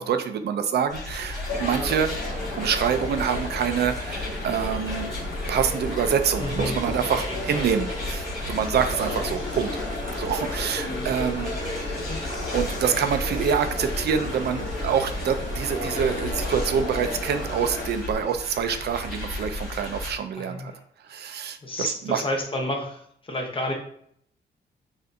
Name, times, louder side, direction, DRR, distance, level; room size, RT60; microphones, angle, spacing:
voice 1, 0.0-5.1 5.5-9.8 10.2-11.5 12.5-20.7 21.0-22.2, right 7 dB, 65° right, 8 dB, 0.4 m, -26 dB
sound 1, 0.9-20.1, left 2 dB, ahead, 1.5 m, -34 dB
sound 2, 1.5-17.9, left 2 dB, 85° left, 1.3 m, -34 dB
sound 3, 6.3-18.0, right 2 dB, 45° right, 0.8 m, -43 dB
voice 2, 6.4-7.7 9.0-9.3 10.9-11.0 11.8-12.2 20.4-20.8 21.6-23.7, left 1 dB, 30° left, 2 dB, 0.8 m, -32 dB
6.6 x 2.6 x 2.6 m, 0.67 s
wide cardioid pair, 130°, 18 cm